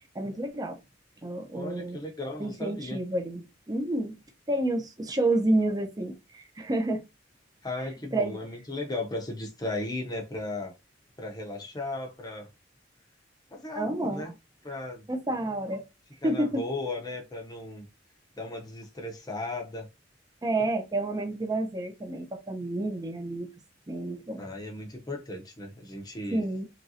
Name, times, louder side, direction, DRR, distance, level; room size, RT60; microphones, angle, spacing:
voice 1, 0.1-0.8 1.2-2.0 2.4-4.2 4.5-7.1 8.1-8.4 13.8-14.3 15.1-15.8 16.2-16.6 20.4-23.5 23.9-24.4 26.3-26.7, right 1 dB, 20° right, 0.5 m, -29 dB
voice 2, 1.5-3.0 7.6-10.7 11.2-12.5 13.5-14.3 14.6-15.0 16.2-17.9 18.3-19.9 24.4-26.4, left 2 dB, 20° left, 0.6 m, -36 dB
3.1 x 2.5 x 2.7 m
head